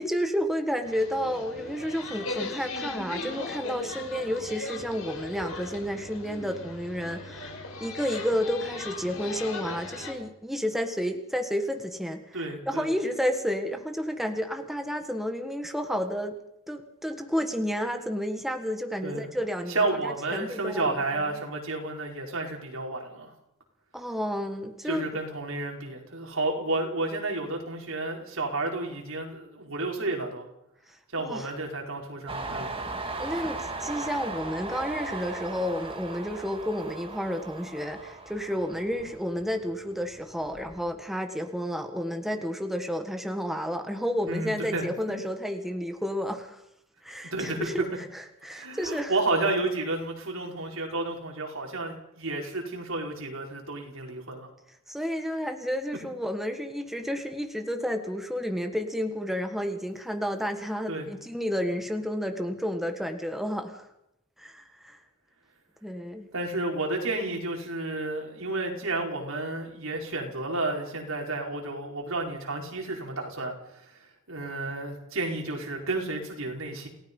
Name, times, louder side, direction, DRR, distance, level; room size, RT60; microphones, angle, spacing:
voice 1, 0.0-16.4 16.7-19.8 20.3-21.2 23.9-25.1 31.2-31.5 33.2-46.6 47.0-47.8 48.1-49.1 54.9-63.9 64.4-65.0 65.8-66.3, equal, ahead, 5 dB, 1.6 m, -31 dB
sound 1, 0.8-10.1, left 3 dB, 80° left, 5.7 m, -38 dB
voice 2, 12.3-12.9 19.0-19.3 19.7-23.3 24.9-30.4 31.1-32.7 44.3-45.2 47.3-47.7 48.5-54.5 60.9-61.1 66.3-73.5 73.8-73.9 74.3-76.9, right 2 dB, 75° right, 1 dB, 5.0 m, -31 dB
Train, 32.3-39.7 40.1-40.9, right 3 dB, 25° right, 2.3 m, -37 dB
28.5 x 17.5 x 5.5 m, 0.81 s
head